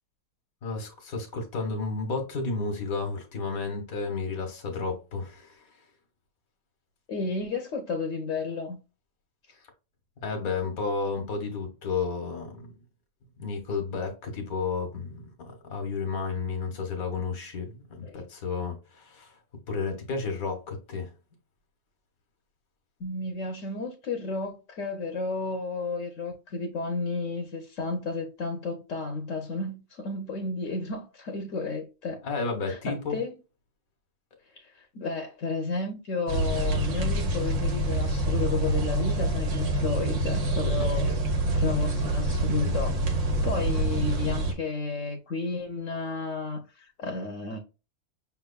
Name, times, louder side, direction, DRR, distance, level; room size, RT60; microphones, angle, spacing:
voice 1, 0.6-5.6 10.2-12.7 13.4-19.3 19.7-21.1 32.2-33.2 40.8-41.2, left 4 dB, 90° left, 1.6 m, -32 dB
voice 2, 7.1-8.8 18.0-18.2 23.0-32.2 32.7-33.4 34.5-41.1 41.5-43.0 43.4-47.6, left 3 dB, 70° left, 1.1 m, -32 dB
sound 1, 36.3-44.5, right 1 dB, 60° right, 1.3 m, -26 dB
5.8 x 3.5 x 2.2 m
omnidirectional pair, 1.5 m